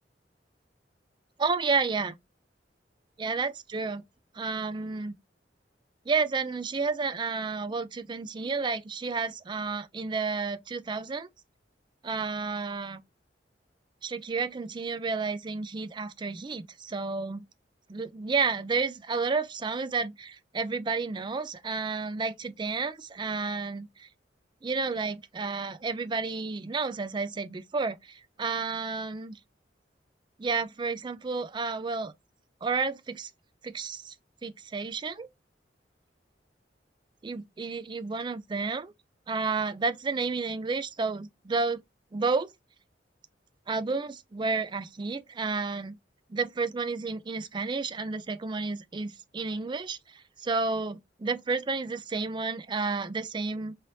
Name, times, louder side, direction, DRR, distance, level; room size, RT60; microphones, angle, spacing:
voice 1, 1.4-2.2 3.2-4.0 4.3-5.1 6.1-11.3 12.0-13.0 14.0-17.4 17.9-24.1 24.6-29.4 30.4-32.1 32.6-33.3 33.6-34.1 34.4-35.3 37.2-38.9 39.3-41.8 42.1-42.5 43.7-46.0 46.3-53.7, right 4 dB, 25° right, 0.4 m, -31 dB
3.1 x 3.0 x 2.6 m
head